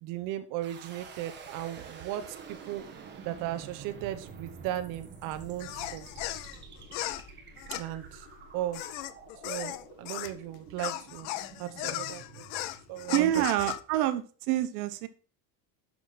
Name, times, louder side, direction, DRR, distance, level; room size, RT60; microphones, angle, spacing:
voice 1, 0.0-2.8 3.2-6.1 7.7-8.3 8.5-8.8 9.4-11.3 11.6-12.5 12.9-13.4, right 13 dB, 45° right, 8 dB, 0.8 m, -36 dB
sound 1, 0.6-13.6, right 6 dB, 25° right, 1.3 m, -48 dB
sound 2, 5.6-10.4 10.8-13.8, left 15 dB, 40° left, 0.4 m, -37 dB
voice 2, 13.1-15.1, right 13 dB, 80° right, 12 dB, 1.2 m, -27 dB
11.0 x 6.1 x 4.1 m, 0.38 s
cardioid pair, 175°, 46 cm